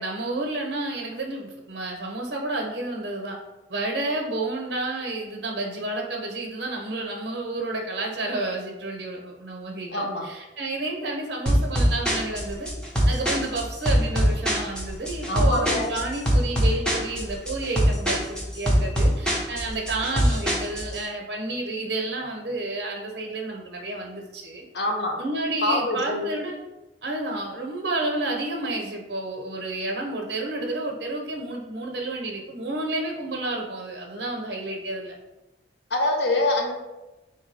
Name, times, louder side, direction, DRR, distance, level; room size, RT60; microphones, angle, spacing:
voice 1, 0.0-3.4 3.7-12.7 13.1-24.6 25.2-26.6 27.0-35.2, right 2 dB, 65° right, 0 dB, 0.8 m, -30 dB
voice 2, 9.9-10.3 15.3-16.0 24.7-25.2 25.6-26.3 35.9-36.8, left 2 dB, 70° left, 2 dB, 0.8 m, -25 dB
sound 1, 11.5-21.0, equal, 5° left, 0.8 m, -23 dB
3.5 x 2.7 x 4.6 m, 1.0 s
head